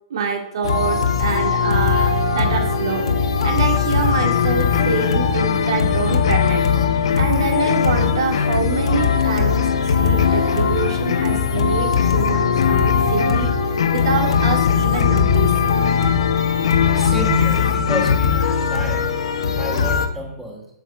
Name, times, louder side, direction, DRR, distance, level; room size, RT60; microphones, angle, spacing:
voice 1, 0.1-13.5 13.9-15.8, right 5 dB, 60° right, 2 dB, 2.4 m, -26 dB
sound 1, 0.6-20.1, left 6 dB, 90° left, 1.4 m, -20 dB
sound 2, 4.2-18.3, left 9 dB, 65° left, 0.5 m, -23 dB
voice 2, 16.9-19.1 19.5-20.7, right 1 dB, 5° right, -1 dB, 1.4 m, -29 dB
8.8 x 6.7 x 4.6 m, 0.76 s
hypercardioid pair, 180°, 3 cm